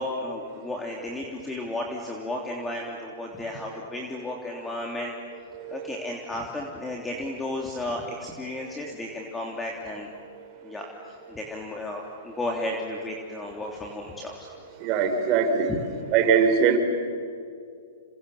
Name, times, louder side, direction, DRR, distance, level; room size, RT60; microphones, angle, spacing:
voice 1, 0.0-5.1 5.7-10.1 10.6-10.9 11.3-14.5 15.7-15.8, left 1 dB, 10° left, 0 dB, 3.2 m, -33 dB
voice 2, 5.5-6.0 14.8-15.7 16.1-16.8, right 6 dB, 40° right, 6 dB, 4.8 m, -22 dB
29.0 x 28.5 x 7.2 m, 2.3 s
hypercardioid pair, 135°, 0 cm